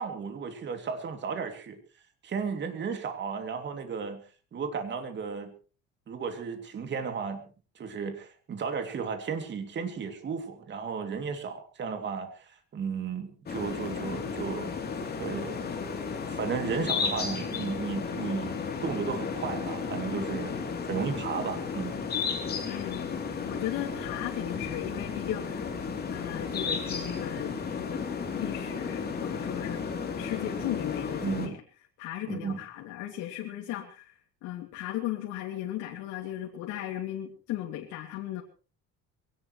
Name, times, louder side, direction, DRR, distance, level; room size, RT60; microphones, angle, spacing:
voice 1, 0.0-1.8 2.2-4.2 4.5-5.5 6.1-7.4 7.7-14.7 15.2-15.6 16.3-20.6 20.9-22.0 31.2-31.6 32.3-32.6, right 6 dB, 35° right, 6 dB, 2.9 m, -34 dB
sound 1, 13.5-31.5, left 5 dB, 30° left, 3.4 m, -33 dB
voice 2, 22.7-25.8 26.1-28.0 28.3-29.8 30.2-31.6 32.0-34.2 34.4-38.4, left 13 dB, 90° left, 0 dB, 2.7 m, -36 dB
22.5 x 18.0 x 3.2 m, 0.36 s
cardioid pair, 145°, 30 cm